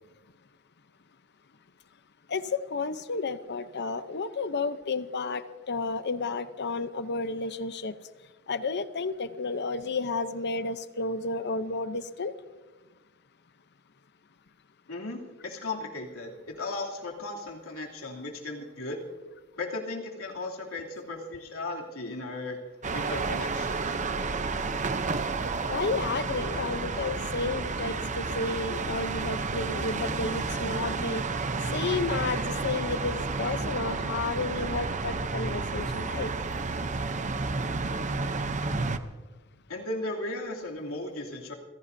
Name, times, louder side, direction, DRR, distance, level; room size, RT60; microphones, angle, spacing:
voice 1, 2.3-7.9 8.5-12.3 25.7-31.2 31.7-36.3, left 3 dB, 55° left, 12 dB, 0.8 m, -32 dB
voice 2, 14.9-19.0 19.6-22.6 22.9-24.0 39.7-41.5, left 2 dB, 85° left, -1 dB, 3.0 m, -36 dB
sound 1, 22.8-39.0, right 3 dB, 35° right, 0.7 m, -31 dB
29.5 x 16.5 x 2.7 m, 1.2 s
head